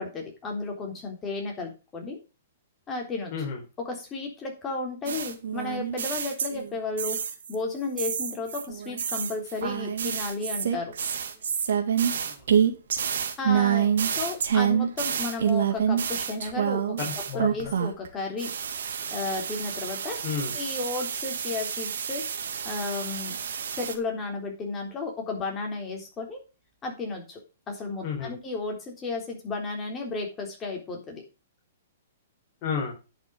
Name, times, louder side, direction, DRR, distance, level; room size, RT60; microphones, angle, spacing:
voice 1, 0.0-2.2 2.9-3.3 3.9-7.2 7.5-10.9 13.4-17.0 17.3-18.5 19.1-20.2 20.5-22.2 22.6-23.4 23.8-26.4 26.8-27.4 27.7-31.2, left 3 dB, 20° left, 1 dB, 3.5 m, -33 dB
sound 1, 5.1-7.5 8.0-18.1 18.4-23.9, right 8 dB, 75° right, 2.0 m, -28 dB
voice 2, 12.1-12.4 17.0-17.7 20.2-20.5 28.0-28.3 32.6-32.9, left 6 dB, 35° left, -3 dB, 4.1 m, -32 dB
10.5 x 6.2 x 4.9 m, 0.30 s
hypercardioid pair, 150°, 0 cm